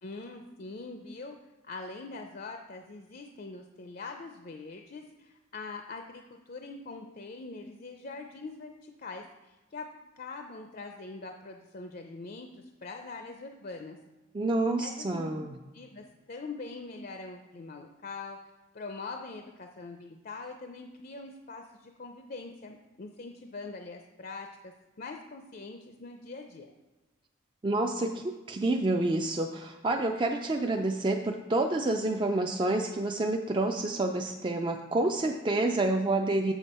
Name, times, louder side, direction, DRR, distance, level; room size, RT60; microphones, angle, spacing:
voice 1, 0.0-1.4 1.6-9.9 10.2-14.0 14.8-15.3 15.7-26.7, left 3 dB, 45° left, 4 dB, 0.5 m, -43 dB
voice 2, 14.3-15.5 27.6-36.5, right 2 dB, 25° right, 3 dB, 0.3 m, -28 dB
7.1 x 7.0 x 4.2 m, 1.2 s
head